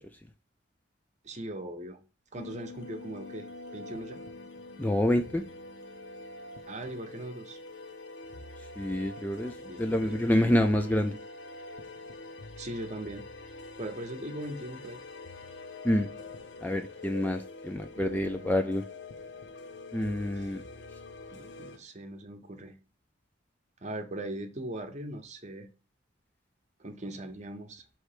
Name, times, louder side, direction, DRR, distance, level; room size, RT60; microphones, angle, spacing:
voice 1, 1.2-2.0 2.3-4.2 6.7-7.6 9.6-10.5 12.6-13.2 13.8-15.0 17.9-18.6 20.3-20.5 21.3-22.7 23.8-25.7 26.8-27.8, right 1 dB, 35° right, 0.8 m, -40 dB
sound 1, 2.4-21.8, left 3 dB, 65° left, 0.8 m, -45 dB
voice 2, 4.8-5.4 8.8-9.5 9.8-11.2 15.8-16.1 16.6-18.8 19.9-20.6, left 1 dB, 10° left, 0.4 m, -27 dB
6.1 x 3.2 x 4.9 m
head